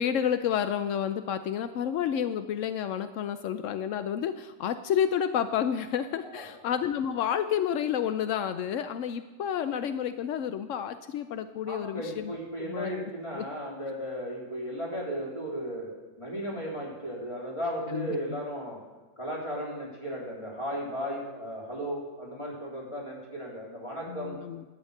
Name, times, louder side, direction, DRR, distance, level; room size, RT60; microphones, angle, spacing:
voice 1, 0.0-13.4 17.9-18.4 24.1-24.6, left 9 dB, 75° left, 10 dB, 0.7 m, -30 dB
voice 2, 11.7-15.9 16.2-18.8 19.2-24.4, equal, 15° left, -4 dB, 3.4 m, -35 dB
12.0 x 9.0 x 6.6 m, 1.2 s
omnidirectional pair, 1.9 m